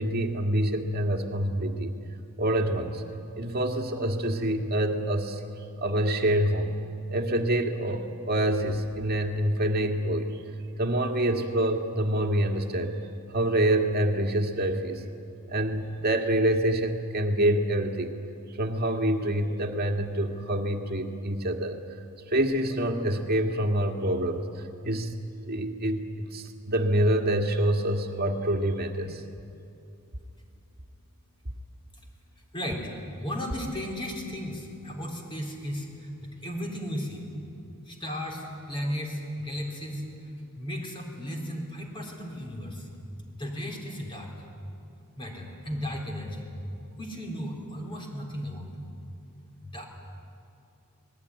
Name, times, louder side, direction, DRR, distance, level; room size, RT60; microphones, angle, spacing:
voice 1, 0.0-1.9 2.4-3.0 3.4-5.4 5.8-6.7 7.1-10.4 10.8-13.0 13.3-15.0 15.5-18.1 18.6-21.8 22.3-25.2 25.5-29.2, right 1 dB, 45° right, 4 dB, 2.0 m, -26 dB
voice 2, 32.5-32.9 33.2-37.3 37.9-40.3 40.6-42.9 43.3-44.3 45.2-46.5 47.0-48.7 49.6-49.9, equal, 25° left, 0 dB, 3.9 m, -35 dB
27.0 x 20.0 x 9.9 m, 2.6 s
head